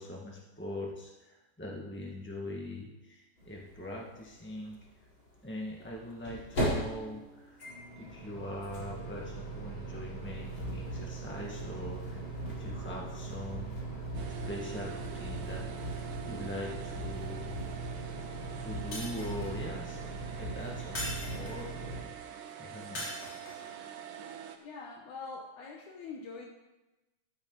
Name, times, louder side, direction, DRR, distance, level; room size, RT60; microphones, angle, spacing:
voice 1, 0.0-4.8 5.4-7.6 8.0-12.2 12.4-13.8 14.2-16.0 16.2-17.6 17.9-18.0 18.6-22.1 22.6-23.1, left 1 dB, 15° left, -2 dB, 0.4 m, -42 dB
sound 1, 3.4-3.5 3.7-3.8 5.7-22.0, right 2 dB, 35° left, 5.1 m, -38 dB
sound 2, 14.1-24.6, right 8 dB, 85° right, 2.7 m, -46 dB
Shatter, 18.9-19.6 20.9-21.8 23.0-23.7, left 1 dB, 55° left, 5.2 m, -40 dB
voice 2, 24.6-26.5, left 4 dB, 70° left, 1 dB, 2.5 m, -44 dB
13.5 x 13.5 x 4.0 m, 1.1 s
omnidirectional pair, 3.7 m